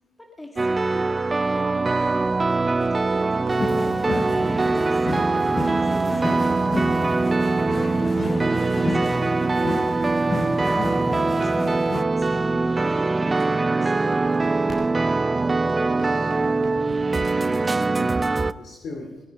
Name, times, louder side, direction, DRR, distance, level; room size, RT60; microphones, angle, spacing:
voice 1, 0.2-1.1 1.5-3.7 4.5-7.3 8.0-9.8 10.5-14.7, left 1 dB, 15° left, 1 dB, 2.3 m, -42 dB
sound 1, 0.6-18.5, right 3 dB, 25° right, 0.5 m, -22 dB
sound 2, 2.8-11.0 11.4-11.6 12.3-12.5 13.4-13.5 13.8-18.1, right 5 dB, 70° right, 2.3 m, -43 dB
sound 3, 3.5-12.0, left 4 dB, 40° left, 0.6 m, -32 dB
voice 2, 15.8-16.8 17.5-18.3 18.5-19.1, left 3 dB, 70° left, 0 dB, 2.6 m, -40 dB
21.5 x 10.0 x 5.3 m, 1.1 s
cardioid pair, 90°, 0 cm